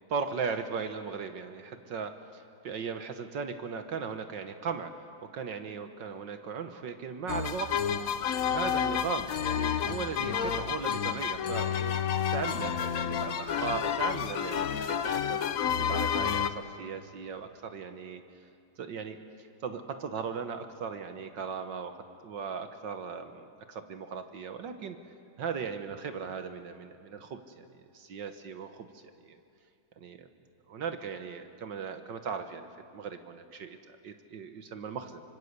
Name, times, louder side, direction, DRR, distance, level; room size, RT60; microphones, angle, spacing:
voice 1, 0.1-7.8 8.5-12.0 12.3-18.2 18.8-25.0 25.4-29.4 30.0-30.3 30.7-35.2, right 6 dB, 65° right, 8 dB, 1.7 m, -38 dB
sound 1, 7.3-16.5, left 8 dB, 55° left, 1.0 m, -30 dB
25.0 x 25.0 x 8.1 m, 2.5 s
omnidirectional pair, 2.3 m